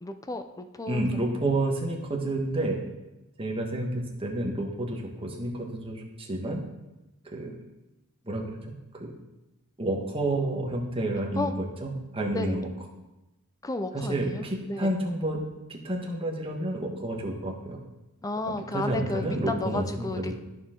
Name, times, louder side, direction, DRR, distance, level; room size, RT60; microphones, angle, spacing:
voice 1, 0.0-1.0 11.4-11.5 12.3-12.6 13.6-14.9 18.2-20.4, left 2 dB, 15° left, 8 dB, 0.5 m, -33 dB
voice 2, 0.9-2.8 3.4-6.6 7.2-7.5 8.2-9.1 9.8-11.5 11.8-12.7 13.9-15.4 15.7-17.8 18.7-20.4, right 1 dB, 25° right, 0 dB, 1.3 m, -30 dB
13.5 x 4.7 x 3.8 m, 1.0 s
head